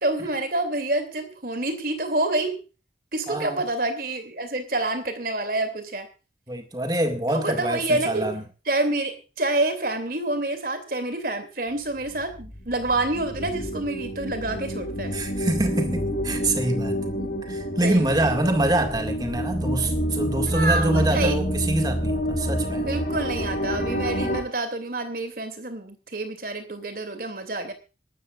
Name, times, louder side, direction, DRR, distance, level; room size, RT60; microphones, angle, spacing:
voice 1, 0.0-2.6 3.1-6.1 7.3-8.3 8.7-15.1 17.2-17.3 17.8-18.2 20.5-21.4 22.8-27.7, right 2 dB, 50° right, 2.8 m, -27 dB
voice 2, 3.3-3.6 6.5-8.4 15.1-17.0 17.4-22.9, right 1 dB, 20° right, 2.1 m, -25 dB
sound 1, 11.8-24.4, equal, 45° left, 4.8 m, -28 dB
25.5 x 13.0 x 2.5 m
head